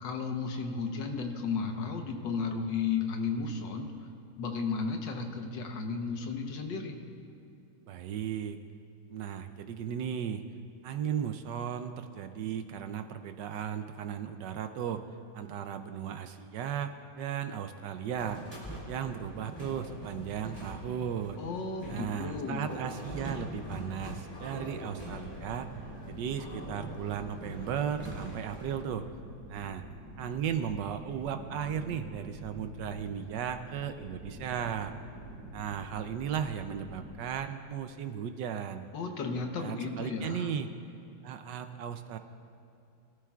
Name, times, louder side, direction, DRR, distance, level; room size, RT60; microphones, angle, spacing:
voice 1, 0.0-3.9 4.4-7.0 21.4-22.7 38.9-40.5, left 5 dB, 60° left, 4 dB, 1.6 m, -34 dB
voice 2, 7.9-8.6 9.1-10.4 10.8-15.0 15.3-18.4 18.9-21.4 21.9-25.7 26.1-29.1 29.5-29.8 30.2-34.9 35.5-38.9 39.6-40.7 41.2-42.2, right 8 dB, 80° right, 8 dB, 1.0 m, -36 dB
sound 1, 18.2-28.7, right 1 dB, 5° left, 3.4 m, -43 dB
sound 2, 24.9-37.1, right 1 dB, 25° right, 3.5 m, -47 dB
23.5 x 13.0 x 2.4 m, 2.6 s
omnidirectional pair, 2.4 m